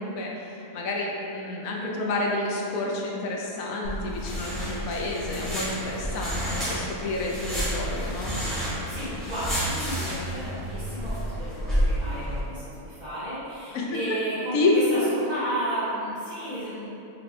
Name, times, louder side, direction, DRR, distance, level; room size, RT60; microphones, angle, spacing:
voice 1, 0.0-8.4 13.7-14.0 14.5-14.7, left 2 dB, 85° left, -1 dB, 1.1 m, -29 dB
sound 1, 3.8-12.4, equal, ahead, 1.3 m, -30 dB
voice 2, 8.8-16.9, right 1 dB, 35° left, -15 dB, 1.2 m, -33 dB
4.5 x 2.6 x 3.2 m, 2.9 s
omnidirectional pair, 1.4 m